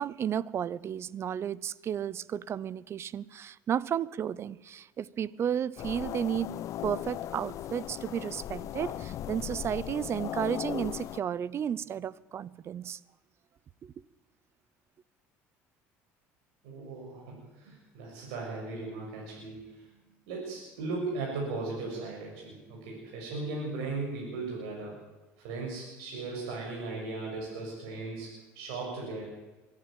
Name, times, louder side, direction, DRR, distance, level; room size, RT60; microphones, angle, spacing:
voice 1, 0.0-6.5 6.8-13.0 13.8-13.9, right 9 dB, 45° right, 0.8 m, -33 dB
sound 1, 5.8-11.2, left 12 dB, 55° left, 0.6 m, -38 dB
voice 2, 16.6-19.9 20.3-25.0 25.4-29.2, right 3 dB, 85° right, 6.8 m, -37 dB
23.5 x 12.5 x 9.2 m
supercardioid pair, 100°, 6 cm